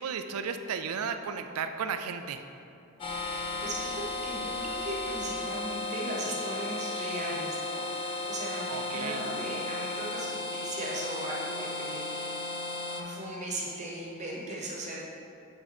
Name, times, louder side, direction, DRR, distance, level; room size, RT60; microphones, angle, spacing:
voice 1, 0.0-2.4 8.7-9.2, right 6 dB, 85° right, 8 dB, 0.4 m, -34 dB
sound 1, 3.0-13.0, left 2 dB, 25° left, 0.6 m, -35 dB
voice 2, 3.2-12.6 12.9-15.0, right 1 dB, 35° right, -4 dB, 1.0 m, -38 dB
8.6 x 3.7 x 4.2 m, 2.6 s
head